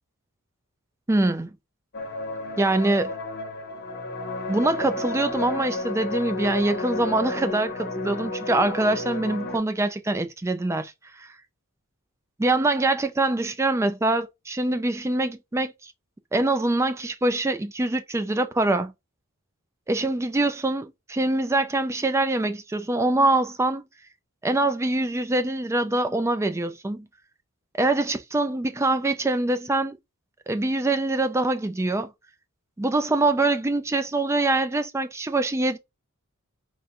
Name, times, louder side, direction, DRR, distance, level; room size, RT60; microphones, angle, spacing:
voice 1, 1.1-1.5 2.6-3.2 4.5-11.3 12.4-15.9 16.3-18.9 19.9-23.8 24.4-27.1 27.8-30.0 30.5-32.1 32.8-35.8, right 2 dB, 15° right, 0.4 m, -24 dB
sound 1, 1.9-9.6, left 2 dB, 45° left, 0.8 m, -32 dB
3.8 x 2.2 x 2.6 m
head